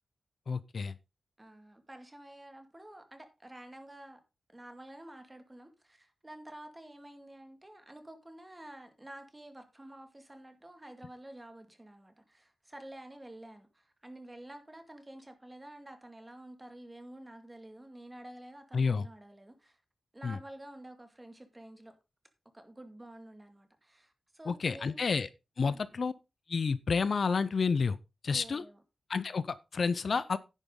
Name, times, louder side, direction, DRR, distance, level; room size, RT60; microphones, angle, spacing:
voice 1, 0.5-0.9 18.7-19.0 20.2-20.4 24.5-25.3 25.6-26.1 26.5-28.0 28.2-28.6 29.1-30.4, left 5 dB, 55° left, 0.6 m, -30 dB
voice 2, 1.4-4.2 4.5-19.8 20.1-21.9 22.5-25.0 25.6-25.8 28.3-28.8, right 1 dB, 15° right, 2.1 m, -50 dB
10.5 x 8.9 x 3.8 m
wide cardioid pair, 120°, 0 cm